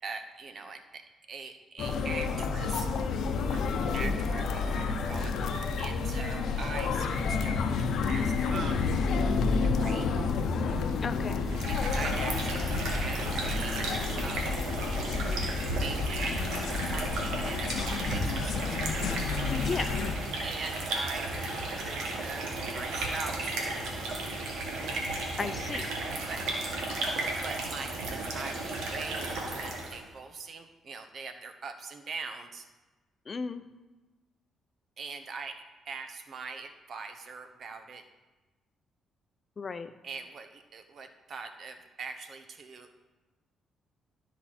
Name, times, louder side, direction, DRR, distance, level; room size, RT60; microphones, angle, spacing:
voice 1, 0.0-3.6 3.9-8.9 9.6-10.1 11.7-13.9 14.2-14.6 15.8-18.6 20.4-23.8 26.2-26.7 27.4-32.7 35.0-38.0 40.0-43.0, right 4 dB, 55° right, 7 dB, 0.9 m, -42 dB
sound 1, 1.8-20.1, left 4 dB, 70° left, 0.7 m, -30 dB
voice 2, 11.0-11.4 19.6-19.9 25.4-25.9 33.3-33.6 39.6-39.9, left 5 dB, 40° left, 11 dB, 0.5 m, -34 dB
sound 2, 11.4-30.0, right 2 dB, 90° right, 1.5 m, -34 dB
12.5 x 4.6 x 4.3 m, 1.1 s
cardioid pair, 90°, 0 cm